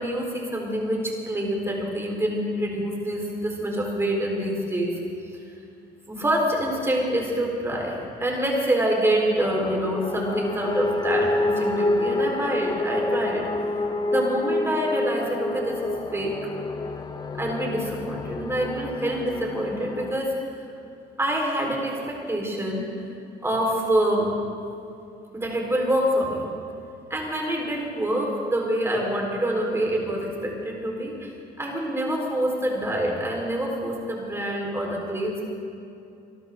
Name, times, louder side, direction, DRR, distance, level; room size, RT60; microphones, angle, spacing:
voice 1, 0.0-4.9 6.1-13.4 14.1-16.3 17.4-20.3 21.2-22.9 23.4-24.3 25.3-26.5 27.1-31.3 31.6-35.5, right 1 dB, 15° right, -1 dB, 4.2 m, -26 dB
sound 1, 9.4-20.2, left 2 dB, 25° left, 0.8 m, -28 dB
26.0 x 13.0 x 3.8 m, 2.6 s
cardioid pair, 110°, 17 cm